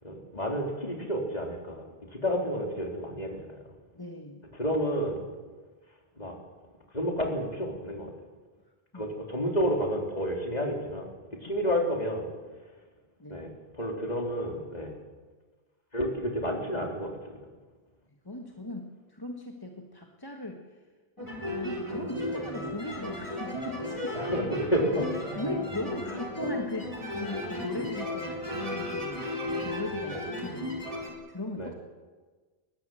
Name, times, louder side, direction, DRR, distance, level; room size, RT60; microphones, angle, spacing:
voice 1, 0.0-3.6 4.6-5.2 6.2-6.4 6.9-8.1 8.9-11.1 11.4-12.3 13.3-14.9 15.9-17.4 24.1-25.1 26.1-26.2 30.1-30.2 31.6-31.7, equal, 40° left, 0 dB, 3.7 m, -30 dB
voice 2, 3.9-4.5 8.9-9.1 13.2-13.4 18.2-20.7 21.2-24.1 25.3-29.2 29.5-30.7 31.3-31.7, left 1 dB, 20° left, 2 dB, 1.5 m, -38 dB
sound 1, 21.2-31.1, left 1 dB, 35° right, 4.3 m, -34 dB
22.0 x 19.0 x 7.7 m, 1.4 s
omnidirectional pair, 1.1 m